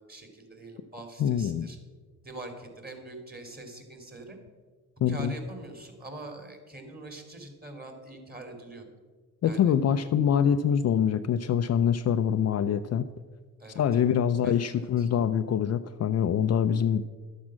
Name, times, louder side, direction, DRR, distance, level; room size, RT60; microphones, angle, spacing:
voice 1, 0.0-1.8 2.2-4.4 5.1-8.8 9.4-9.7 13.6-14.1 14.4-15.1, right 2 dB, 25° right, 5 dB, 2.8 m, -43 dB
voice 2, 1.2-1.7 5.0-5.3 9.4-13.1 13.8-17.0, left 8 dB, 45° left, 9 dB, 0.5 m, -25 dB
11.5 x 7.4 x 6.2 m, 1.5 s
cardioid pair, 85°, 38 cm